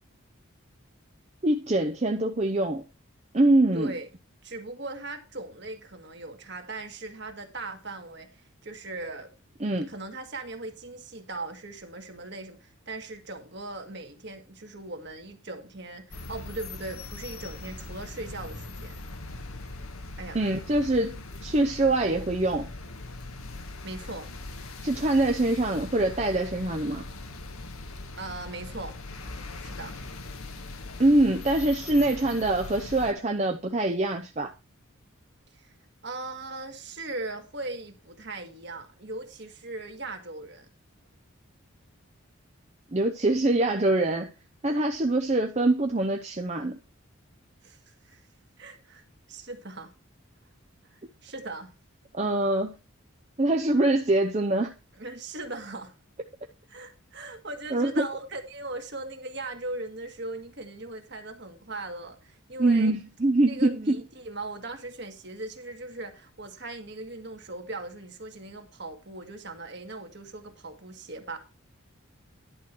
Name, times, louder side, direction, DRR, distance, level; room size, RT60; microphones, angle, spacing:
voice 1, 1.4-2.8 3.3-3.9 9.6-9.9 20.3-22.7 24.8-27.0 31.0-34.5 42.9-44.3 44.6-46.8 52.1-52.7 53.4-54.7 57.7-58.1 62.6-64.0, right 2 dB, 30° right, 0.7 m, -24 dB
voice 2, 3.7-4.1 4.4-8.3 8.6-9.3 9.9-19.0 20.2-20.4 23.8-24.3 28.2-29.0 29.6-29.9 35.5-35.7 36.0-40.7 47.6-48.2 48.6-49.9 50.9-51.7 55.0-55.9 56.7-62.9 63.5-71.4, right 2 dB, 50° right, 1.9 m, -39 dB
sound 1, 16.1-33.1, left 2 dB, 90° left, 1.5 m, -40 dB
11.0 x 4.7 x 6.0 m
head